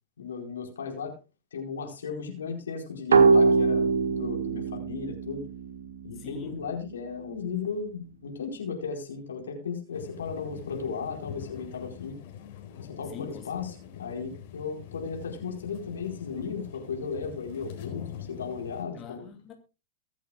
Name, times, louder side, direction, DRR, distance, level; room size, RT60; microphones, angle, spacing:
voice 1, 0.2-1.2 1.5-5.4 6.0-12.2 12.8-19.3, left 5 dB, 80° left, 4.7 m, -35 dB
sound 1, 3.1-6.6, right 4 dB, 85° right, 1.5 m, -23 dB
voice 2, 6.2-6.6 13.1-13.5 18.9-19.5, left 7 dB, 35° left, 2.8 m, -42 dB
sound 2, 9.9-18.8, left 9 dB, 60° left, 4.4 m, -44 dB
23.5 x 8.4 x 2.4 m
hypercardioid pair, 100°, 0 cm